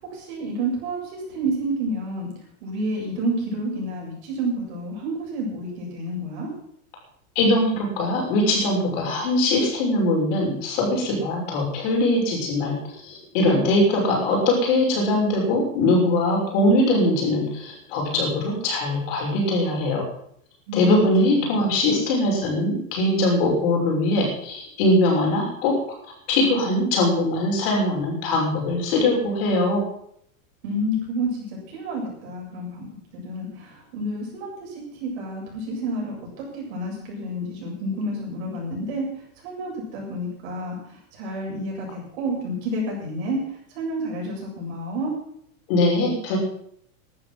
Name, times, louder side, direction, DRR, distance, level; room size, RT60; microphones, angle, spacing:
voice 1, 0.0-2.3 2.6-6.5 20.7-21.7 30.6-32.9 33.1-39.1 39.4-43.4 43.7-45.1, right 1 dB, 45° right, -2 dB, 7.9 m, -29 dB
voice 2, 7.3-20.0 20.7-25.7 26.3-29.8 45.7-46.4, left 1 dB, 40° left, -1 dB, 6.2 m, -21 dB
14.5 x 12.0 x 6.1 m, 0.66 s
supercardioid pair, 180°, 43 cm